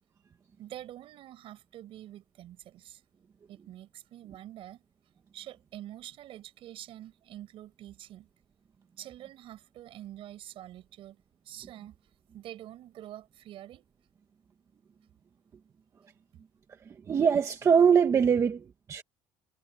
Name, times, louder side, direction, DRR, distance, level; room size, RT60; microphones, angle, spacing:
voice 1, 0.6-3.0 3.5-4.8 5.3-8.3 9.0-11.2 11.4-12.0 12.3-13.9, right 13 dB, 55° right, 5.8 m, -46 dB
voice 2, 17.1-19.0, right 7 dB, 25° right, 1.3 m, -23 dB
cardioid pair, 160°, 11 cm